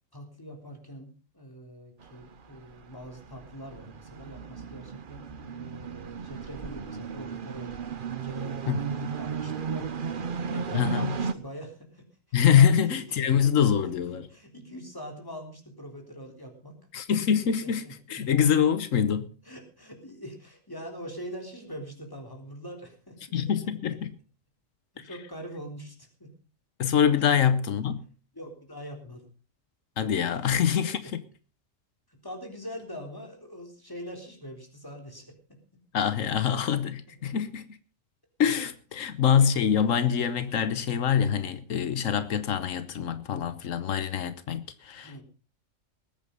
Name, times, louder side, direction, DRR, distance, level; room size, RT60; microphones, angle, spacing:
voice 1, 0.1-7.8 8.1-12.1 12.5-13.2 13.6-16.8 17.4-18.2 19.4-24.0 24.9-26.3 28.3-29.2 30.3-31.1 32.1-35.6 37.1-37.2 39.0-39.2 45.0-45.2, equal, 15° left, 3.7 m, -43 dB
sound 1, 2.0-11.3, right 6 dB, 45° right, 1.0 m, -35 dB
voice 2, 8.7-9.1 10.7-11.1 12.3-14.3 16.9-17.8 18.1-19.3 23.3-24.1 26.8-28.0 30.0-31.0 35.9-37.7 38.4-45.2, left 8 dB, 90° left, 1.4 m, -25 dB
20.0 x 8.9 x 5.4 m
omnidirectional pair, 1.3 m